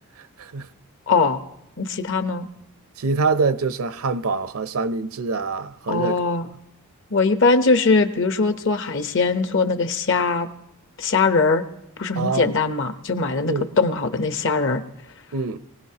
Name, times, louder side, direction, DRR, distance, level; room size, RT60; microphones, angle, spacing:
voice 1, 1.1-1.4 1.8-2.5 5.9-6.5 7.1-10.5 11.0-11.6 12.0-14.8, left 4 dB, 60° left, 0.9 m, -21 dB
voice 2, 3.0-6.2 12.2-12.5 13.5-13.7 15.3-15.6, right 4 dB, 70° right, 0.6 m, -25 dB
23.0 x 16.5 x 2.9 m
head